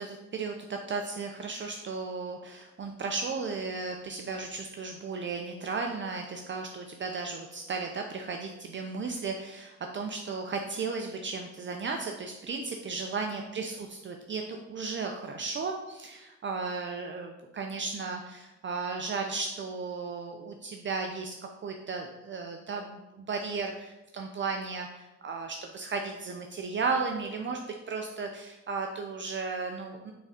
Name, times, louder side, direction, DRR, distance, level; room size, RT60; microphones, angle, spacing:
voice 1, 0.0-21.3 21.6-27.6 27.9-30.1, right 4 dB, 40° right, 3 dB, 0.6 m, -35 dB
8.5 x 3.7 x 4.2 m, 1.0 s
cardioid pair, 90°, 30 cm